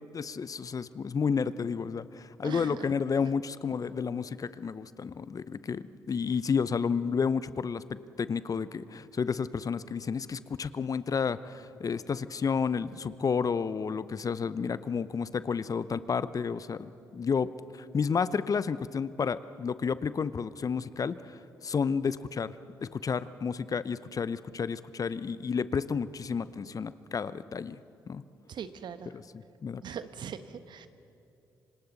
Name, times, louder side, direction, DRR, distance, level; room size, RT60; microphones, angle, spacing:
voice 1, 0.0-21.3 21.6-22.5 22.8-27.8 28.1-28.2 29.6-29.8, left 6 dB, 45° left, 16 dB, 0.7 m, -31 dB
voice 2, 2.4-2.9 28.5-29.1 29.8-30.9, right 8 dB, 60° right, 11 dB, 1.1 m, -40 dB
28.0 x 26.0 x 4.1 m, 2.7 s
hypercardioid pair, 45°, 9 cm